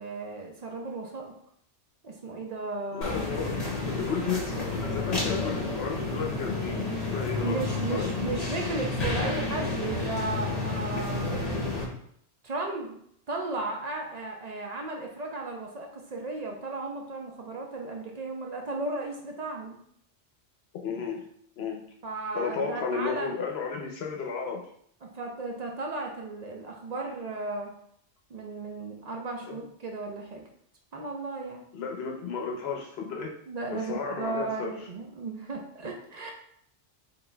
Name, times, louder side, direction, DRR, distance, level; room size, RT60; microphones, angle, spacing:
voice 1, 0.0-1.3 2.0-3.2 7.4-11.6 12.4-13.0 13.3-19.8 22.0-23.3 25.0-27.7 28.3-30.4 30.9-31.7 33.5-36.3, right 3 dB, 50° right, 1 dB, 0.5 m, -35 dB
voice 2, 2.9-3.6 4.0-8.1 20.8-21.2 21.6-21.8 22.3-24.7 29.5-29.6 31.7-33.3 33.7-34.7, left 5 dB, 65° left, 2 dB, 0.9 m, -33 dB
sound 1, 3.0-11.8, left 3 dB, 40° left, 0.9 m, -30 dB
3.9 x 3.7 x 2.2 m, 0.67 s
omnidirectional pair, 1.2 m